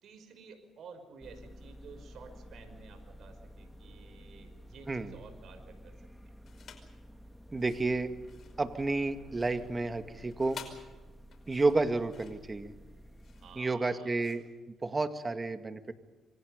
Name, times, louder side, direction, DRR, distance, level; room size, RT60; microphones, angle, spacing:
voice 1, 0.0-6.1 13.4-14.2, right 5 dB, 65° right, 7 dB, 5.7 m, -52 dB
sound 1, 1.2-13.6, equal, 5° left, 2.0 m, -52 dB
sound 2, 6.4-7.0 7.5-15.3, left 6 dB, 55° left, 5.3 m, -52 dB
voice 2, 7.5-8.1 8.6-10.6 11.5-12.7 13.6-15.9, right 3 dB, 25° right, 8 dB, 2.1 m, -31 dB
27.5 x 25.0 x 5.2 m, 1.2 s
cardioid pair, 90°, 0 cm